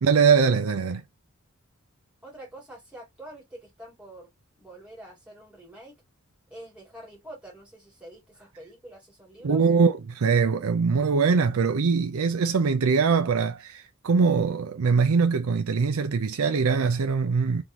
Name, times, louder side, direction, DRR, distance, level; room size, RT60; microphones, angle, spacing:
voice 1, 0.0-1.0 9.4-17.6, right 5 dB, 80° right, 0.5 m, -22 dB
voice 2, 2.2-4.3 4.6-6.0 6.5-9.6, right 1 dB, 5° right, 2.5 m, -46 dB
3.6 x 3.6 x 2.8 m
head